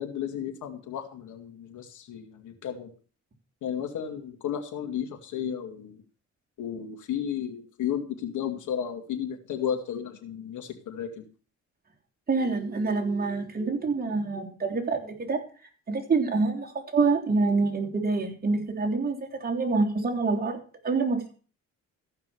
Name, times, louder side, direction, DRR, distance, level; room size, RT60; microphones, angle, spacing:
voice 1, 0.0-2.9 3.6-6.0 6.6-11.2, left 9 dB, 75° left, 4 dB, 2.4 m, -33 dB
voice 2, 12.3-15.4 15.9-21.4, right 4 dB, 30° right, 1 dB, 3.3 m, -26 dB
14.5 x 5.8 x 7.0 m, 0.39 s
cardioid pair, 90°, 30 cm